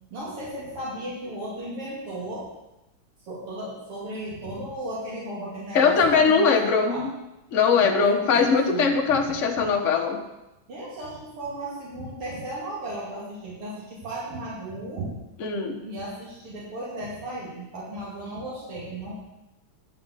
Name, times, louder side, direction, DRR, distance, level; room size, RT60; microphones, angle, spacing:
voice 1, 0.1-2.5 3.3-7.0 7.8-9.2 10.7-15.1 15.8-19.1, right 1 dB, 85° right, -6 dB, 3.2 m, -35 dB
voice 2, 5.7-7.1 7.5-10.2 15.4-15.8, left 5 dB, 45° left, 3 dB, 1.2 m, -21 dB
10.5 x 5.1 x 8.2 m, 0.96 s
omnidirectional pair, 2.4 m